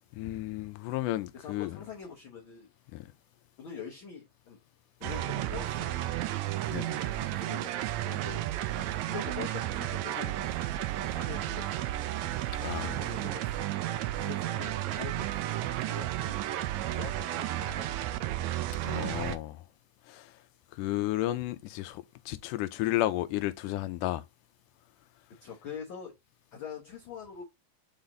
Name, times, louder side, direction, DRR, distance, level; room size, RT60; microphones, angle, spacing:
voice 1, 0.1-1.8 2.9-3.1 6.7-7.0 12.6-13.0 18.8-19.7 20.1-20.4 20.7-24.3, left 15 dB, 85° left, 2.1 m, -33 dB
voice 2, 1.3-2.7 3.6-4.6 5.0-6.2 7.3-8.5 9.1-10.3 11.1-11.7 12.6-13.6 14.2-16.4 16.9-18.2 25.4-26.2 26.5-27.4, left 7 dB, 60° left, 1.3 m, -44 dB
sound 1, 5.0-19.4, right 14 dB, 80° right, 1.8 m, -33 dB
6.0 x 4.1 x 3.8 m
omnidirectional pair, 3.7 m